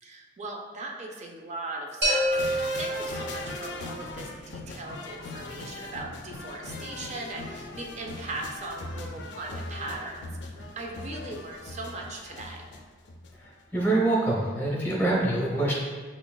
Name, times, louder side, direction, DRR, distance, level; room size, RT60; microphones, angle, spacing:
voice 1, 0.0-12.6, right 2 dB, 40° right, 1 dB, 0.5 m, -39 dB
sound 1, 2.0-3.9, equal, 65° right, 1.2 m, -27 dB
sound 2, 2.3-13.5 13.8-13.9, left 2 dB, 70° left, 0.4 m, -40 dB
voice 2, 13.7-15.7, right 2 dB, 10° left, -4 dB, 0.9 m, -25 dB
5.9 x 2.4 x 2.3 m, 1.4 s
head